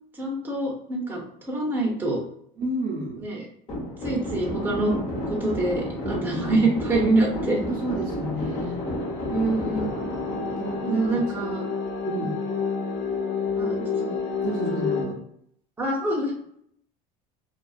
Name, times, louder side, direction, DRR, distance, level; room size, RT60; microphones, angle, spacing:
voice 1, 0.2-1.2 1.5-2.2 3.2-3.4 4.0-4.9 5.3-7.6 9.3-10.1 10.8-11.6 13.6-14.2 15.8-16.3, right 2 dB, 10° right, -3 dB, 0.7 m, -25 dB
voice 2, 2.6-3.2 6.0-6.7 7.5-8.9 10.3-11.6 12.0-12.4 14.4-15.2, right 1 dB, 55° right, -1 dB, 0.7 m, -32 dB
sound 1, 3.7-12.0, equal, 35° left, 0.9 m, -32 dB
sound 2, 7.3-15.0, left 5 dB, 60° left, 1.0 m, -30 dB
2.5 x 2.3 x 2.4 m, 0.68 s
cardioid pair, 120°, 18 cm